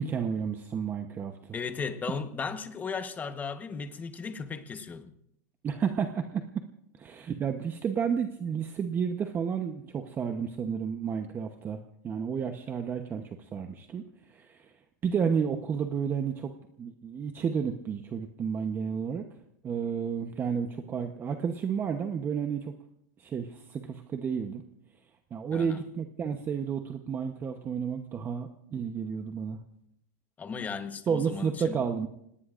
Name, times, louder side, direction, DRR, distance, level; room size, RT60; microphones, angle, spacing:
voice 1, 0.0-1.6 5.6-6.6 7.0-11.8 12.0-14.7 15.0-19.2 19.6-22.7 23.2-24.6 25.3-29.6 31.1-32.1, right 6 dB, 20° right, 0.9 m, -31 dB
voice 2, 1.5-5.1 25.5-25.8 30.4-31.8, left 5 dB, 15° left, 1.2 m, -36 dB
28.5 x 18.5 x 2.5 m
supercardioid pair, 145°, 10 cm